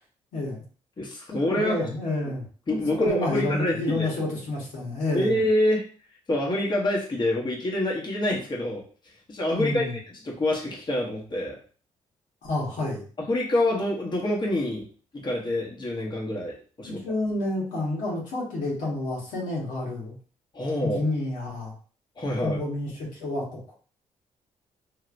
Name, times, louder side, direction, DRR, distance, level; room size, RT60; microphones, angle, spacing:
voice 1, 0.3-0.6 1.5-5.4 9.5-10.0 12.4-13.0 16.8-20.1 20.8-21.7 22.4-23.7, left 2 dB, 85° left, -3 dB, 1.4 m, -29 dB
voice 2, 1.0-1.8 2.3-2.4 2.7-4.1 5.1-5.8 6.3-8.8 9.3-9.9 10.2-11.6 13.2-14.8 15.2-17.0 20.5-21.0 22.2-22.6, left 1 dB, 35° left, -2 dB, 1.0 m, -26 dB
3.1 x 2.8 x 2.5 m, 0.40 s
cardioid pair, 80°, 13 cm